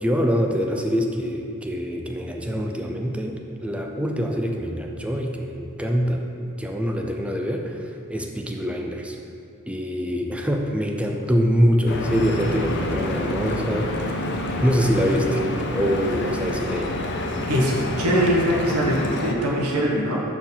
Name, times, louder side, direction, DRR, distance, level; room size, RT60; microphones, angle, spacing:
voice 1, 0.0-6.3 6.6-9.2 9.7-14.3 14.6-15.5 15.7-16.9, equal, 5° right, 2 dB, 0.5 m, -24 dB
Stream / Boat Water vehicle, 11.9-19.3, left 1 dB, 55° left, 0.6 m, -28 dB
voice 2, 17.5-20.2, equal, 85° right, -2 dB, 1.2 m, -22 dB
6.3 x 4.5 x 5.5 m, 2.4 s
head